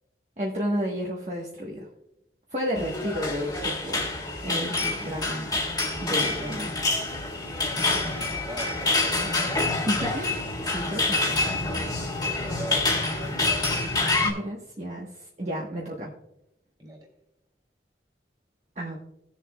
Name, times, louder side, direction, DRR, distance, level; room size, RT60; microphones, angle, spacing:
voice 1, 0.4-1.9 2.5-4.1 4.4-5.5 6.0-6.7 9.9-11.4 14.2-16.1 18.8-19.0, equal, 40° right, -3 dB, 1.2 m, -32 dB
voice 2, 2.6-3.0 6.4-6.5 7.8-9.6 10.0-10.1 12.1-14.5 15.7-15.9 16.8-17.1, right 1 dB, 25° right, 0 dB, 2.7 m, -41 dB
sound 1, 2.8-14.3, left 2 dB, 20° left, 1.8 m, -27 dB
18.0 x 7.1 x 2.3 m, 0.85 s
head